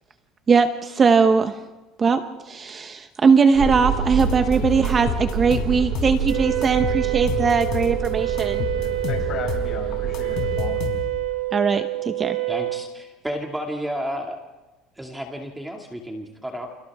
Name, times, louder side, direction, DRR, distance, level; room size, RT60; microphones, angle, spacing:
voice 1, 0.5-1.6 2.0-8.7 11.5-12.4, right 5 dB, 25° right, 8 dB, 0.9 m, -20 dB
sound 1, 3.5-10.7, right 6 dB, 50° right, 4.9 m, -28 dB
sound 2, 4.2-6.3 6.6-8.1 8.4-11.3, left 9 dB, 55° left, 4.2 m, -30 dB
Wind instrument woodwind instrument, 6.2-12.9, right 17 dB, 75° right, 3.5 m, -27 dB
voice 2, 8.8-11.0, left 6 dB, 40° left, 0 dB, 6.4 m, -36 dB
voice 3, 12.5-14.4 15.0-16.7, equal, 5° right, 1 dB, 2.2 m, -31 dB
29.5 x 28.5 x 3.6 m, 1.1 s
cardioid pair, 140°, 0 cm